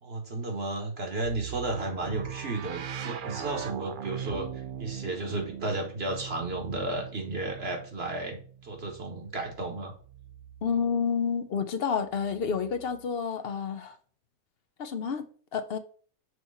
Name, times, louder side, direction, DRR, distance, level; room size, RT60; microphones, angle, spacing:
voice 1, 0.0-9.9, right 2 dB, 50° right, 1.3 m, -33 dB
sound 1, 1.2-11.1 12.1-13.1, right 8 dB, 65° right, 0.5 m, -41 dB
voice 2, 10.6-14.0 14.8-15.8, left 6 dB, 55° left, 0.7 m, -29 dB
6.3 x 2.9 x 5.4 m
omnidirectional pair, 1.5 m